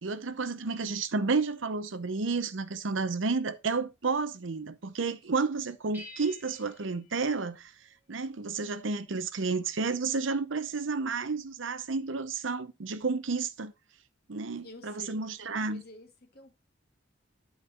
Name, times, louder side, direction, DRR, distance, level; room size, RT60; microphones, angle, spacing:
voice 1, 0.0-7.7 8.1-13.7 14.3-15.8, right 4 dB, 80° right, 0.8 m, -31 dB
sound 1, 5.9-8.2, left 2 dB, 10° right, 1.5 m, -51 dB
voice 2, 14.6-16.6, left 1 dB, 55° left, 1.7 m, -51 dB
11.0 x 4.1 x 4.0 m
head